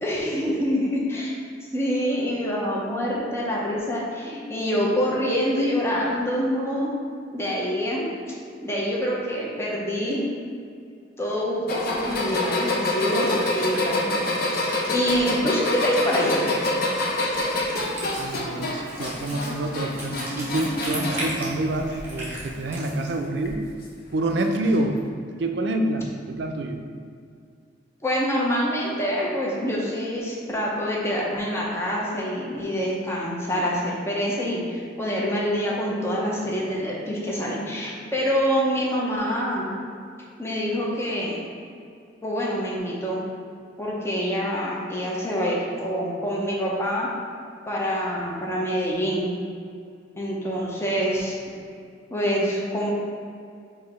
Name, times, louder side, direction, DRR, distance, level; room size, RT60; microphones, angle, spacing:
voice 1, 0.0-1.4 1.7-6.9 7.3-8.1 8.6-10.2 11.2-16.5 28.0-39.7 40.4-41.4 42.2-43.2 43.8-47.1 47.7-49.3 50.2-51.4 52.1-52.9, equal, 15° left, -4 dB, 0.6 m, -26 dB
sound 1, 11.7-21.3 21.7-22.3 23.4-23.5 24.7-24.8, left 2 dB, 55° left, 0.5 m, -27 dB
Wind instrument woodwind instrument, 17.7-23.2, right 1 dB, 15° right, 1.2 m, -36 dB
voice 2, 18.2-23.6 24.1-25.0 25.4-26.8, right 1 dB, 65° right, 5 dB, 0.4 m, -27 dB
4.8 x 2.6 x 4.2 m, 2.3 s
head